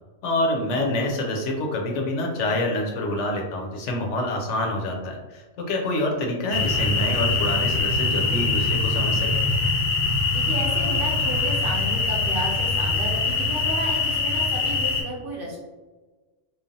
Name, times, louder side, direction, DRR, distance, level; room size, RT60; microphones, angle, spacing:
voice 1, 0.2-9.4, left 1 dB, 80° left, 1 dB, 0.9 m, -27 dB
sound 1, 6.5-15.0, left 3 dB, 50° left, 0.6 m, -23 dB
voice 2, 10.3-15.6, right 1 dB, 55° right, -3 dB, 0.8 m, -33 dB
3.1 x 2.0 x 2.6 m, 1.2 s
omnidirectional pair, 1.2 m